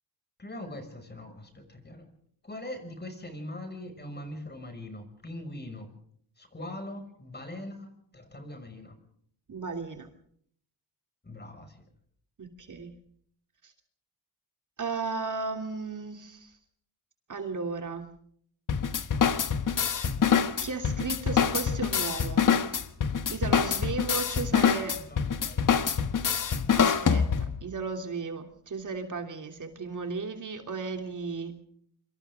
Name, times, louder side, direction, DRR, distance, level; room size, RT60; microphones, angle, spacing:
voice 1, 0.4-2.1 2.4-5.9 6.4-9.0 11.2-11.8 24.9-25.8, left 1 dB, 25° left, 6 dB, 6.3 m, -42 dB
voice 2, 9.5-10.1 12.4-13.0 13.6-13.7 14.8-16.5 17.3-18.1 20.6-22.5 23.3-25.0 26.7-31.6, right 4 dB, 45° right, 4 dB, 3.1 m, -35 dB
sound 1, 18.7-27.6, left 7 dB, 50° left, 1.6 m, -25 dB
26.5 x 26.0 x 3.8 m, 0.63 s
cardioid pair, 100°, 41 cm